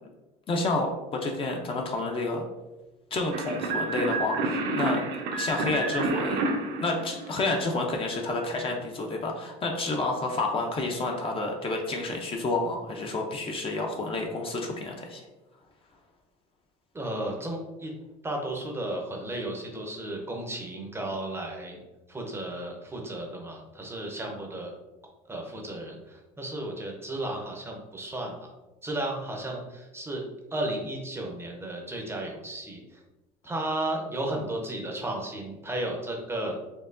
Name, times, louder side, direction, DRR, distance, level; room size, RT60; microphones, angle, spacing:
voice 1, 0.5-2.4 3.1-5.0 5.4-6.4 6.8-15.2, left 2 dB, 30° left, 1 dB, 0.5 m, -29 dB
sound 1, 3.3-7.8, right 3 dB, 65° right, 0.7 m, -29 dB
voice 2, 16.9-17.9 18.2-21.8 22.1-24.7 25.3-28.5 28.8-30.2 30.5-33.0 33.4-36.6, right 1 dB, 15° right, 1 dB, 0.6 m, -34 dB
4.5 x 2.7 x 2.5 m, 1.1 s
cardioid pair, 130°, 18 cm